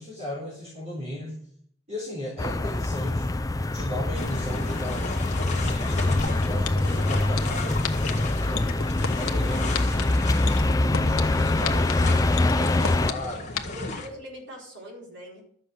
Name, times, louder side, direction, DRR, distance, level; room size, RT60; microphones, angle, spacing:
voice 1, 0.0-1.4 1.9-3.3 3.7-8.7 9.2-10.3 11.0-14.0, left 1 dB, 30° right, -4 dB, 3.8 m, -37 dB
sound 1, 2.4-13.1, left 2 dB, 15° left, 0.4 m, -24 dB
sound 2, 4.1-14.1, left 3 dB, 35° left, 1.8 m, -35 dB
sound 3, 6.2-6.3 6.6-7.4 7.8-8.1 8.5-9.3 9.7-10.0 10.5-11.2 11.6-11.9 12.4-13.1 13.6-13.7, left 7 dB, 80° left, 1.2 m, -29 dB
voice 2, 13.7-15.4, left 1 dB, 55° right, -3 dB, 4.9 m, -41 dB
12.0 x 7.8 x 6.2 m, 0.64 s
head